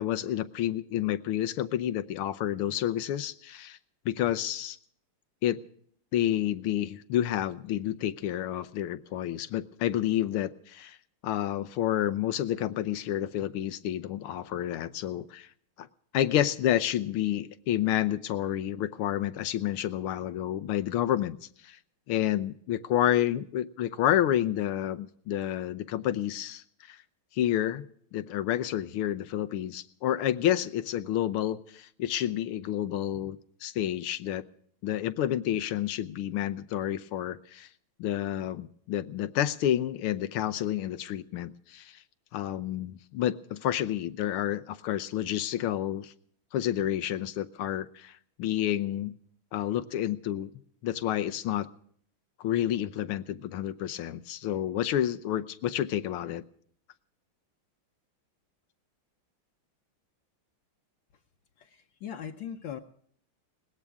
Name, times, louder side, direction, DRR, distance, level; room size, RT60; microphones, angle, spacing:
voice 1, 0.0-3.8 4.1-4.8 5.4-5.6 6.1-11.0 11.2-15.5 15.8-15.9 16.1-21.4 21.6-21.8 22.1-27.0 27.3-27.9 28.1-34.4 34.8-37.7 38.0-42.0 42.3-46.1 46.5-48.1 48.4-49.2 49.5-50.5 50.8-51.7 52.4-56.4, left 11 dB, 90° left, 14 dB, 1.7 m, -29 dB
voice 2, 61.6-62.8, left 8 dB, 70° left, 3 dB, 1.6 m, -39 dB
21.0 x 18.5 x 3.6 m, 0.62 s
omnidirectional pair, 2.3 m